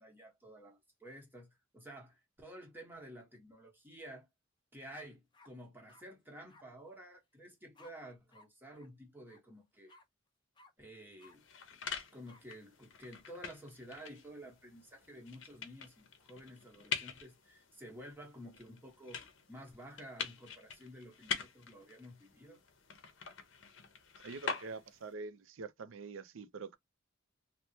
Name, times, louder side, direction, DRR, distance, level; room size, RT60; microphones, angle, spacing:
voice 1, 0.0-4.3 4.7-9.9 10.8-11.4 11.7-11.8 12.1-22.6, equal, 10° right, 1.0 m, -52 dB
sound 1, 4.8-5.0 5.3-6.0 6.5-6.6 7.7-7.9 8.3-8.5 8.7-8.9 9.3-9.4 9.9-10.0 10.6-10.7 11.2-11.4 12.3-12.4, left 2 dB, 25° left, 0.5 m, -60 dB
sound 2, 11.2-25.1, left 6 dB, 65° left, 0.7 m, -45 dB
voice 2, 24.2-26.8, right 4 dB, 80° right, 0.5 m, -45 dB
3.3 x 2.1 x 2.6 m
head